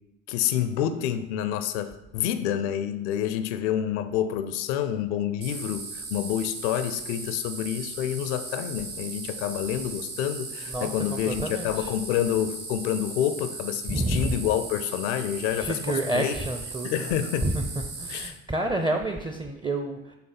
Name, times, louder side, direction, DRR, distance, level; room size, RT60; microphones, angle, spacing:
voice 1, 0.3-16.4 16.8-17.5 18.1-18.3, left 10 dB, 70° left, 10 dB, 0.5 m, -28 dB
sound 1, 5.4-18.3, right 4 dB, 75° right, 1.0 m, -38 dB
voice 2, 11.3-11.9 13.9-14.4 15.6-17.1 17.4-17.6 18.0-20.2, right 1 dB, 15° right, 4 dB, 0.6 m, -29 dB
5.7 x 3.6 x 5.8 m, 0.94 s
figure-of-eight pair, 55°, 35 cm